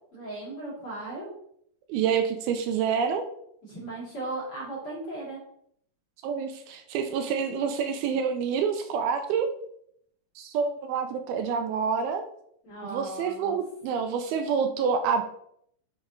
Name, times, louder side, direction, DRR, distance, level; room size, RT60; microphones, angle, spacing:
voice 1, 0.1-1.3 3.6-5.4 12.6-13.6, right 2 dB, 40° left, -6 dB, 2.6 m, -37 dB
voice 2, 1.9-3.3 6.2-9.5 10.4-12.3 12.8-15.2, right 6 dB, 80° right, 7 dB, 2.4 m, -27 dB
7.2 x 4.0 x 3.8 m, 0.69 s
omnidirectional pair, 4.5 m